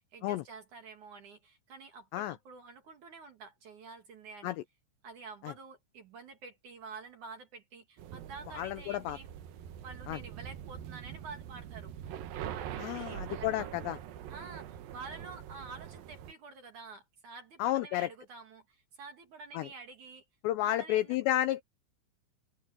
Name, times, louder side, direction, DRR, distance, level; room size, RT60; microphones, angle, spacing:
voice 1, 0.1-4.6 5.0-9.3 9.8-11.9 12.5-14.0 14.3-20.2 20.6-21.2, right 4 dB, 50° right, 2.7 m, -49 dB
sound 1, 8.0-16.3, right 10 dB, 70° right, 2.2 m, -44 dB
voice 2, 8.5-9.2 10.1-10.2 12.8-14.0 17.6-18.1 19.5-19.7 20.4-21.6, left 14 dB, 85° left, 2.6 m, -31 dB
omnidirectional pair, 5.7 m